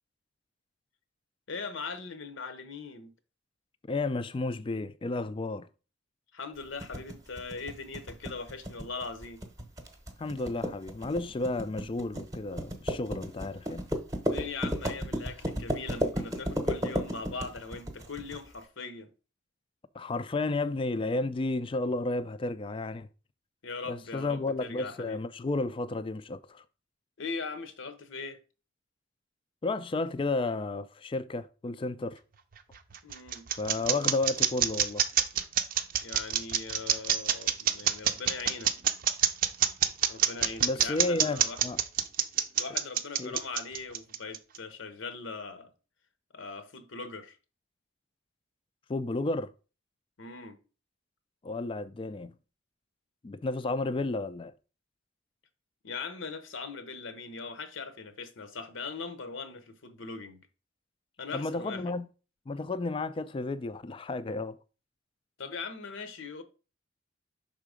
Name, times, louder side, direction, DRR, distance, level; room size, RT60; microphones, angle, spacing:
voice 1, 1.5-3.1 6.3-9.4 14.3-19.1 23.6-25.2 27.2-28.4 33.0-33.4 36.0-38.7 40.1-41.6 42.5-45.7 46.3-47.4 50.2-50.6 55.8-60.4 61.2-61.8 65.4-66.4, left 4 dB, 75° left, 0.8 m, -40 dB
voice 2, 3.9-5.7 10.2-13.9 19.9-23.1 23.9-26.6 29.6-32.2 33.6-35.0 40.6-41.8 43.2-43.4 48.9-49.5 51.4-52.4 53.2-54.5 61.3-62.1 62.5-64.6, left 2 dB, 25° left, 0.3 m, -32 dB
sound 1, 6.8-18.4, equal, 15° right, 0.9 m, -33 dB
sound 2, 32.5-44.6, right 10 dB, 45° right, 0.5 m, -26 dB
5.7 x 3.7 x 5.0 m
head